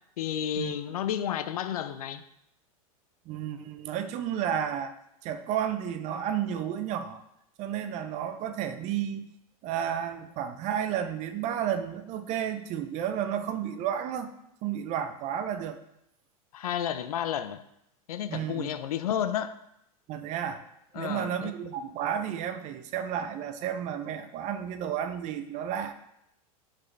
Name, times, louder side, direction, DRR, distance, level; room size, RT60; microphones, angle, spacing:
voice 1, 0.2-2.2 16.5-17.6 18.1-19.5 20.9-21.5, left 10 dB, 80° left, 0.5 m, -31 dB
voice 2, 3.3-4.9 5.2-7.2 7.6-9.3 9.6-14.3 14.6-15.8 18.3-18.7 20.1-20.6 21.0-25.9, right 9 dB, 40° right, 0.6 m, -32 dB
7.3 x 4.4 x 3.3 m
hypercardioid pair, 115°, 19 cm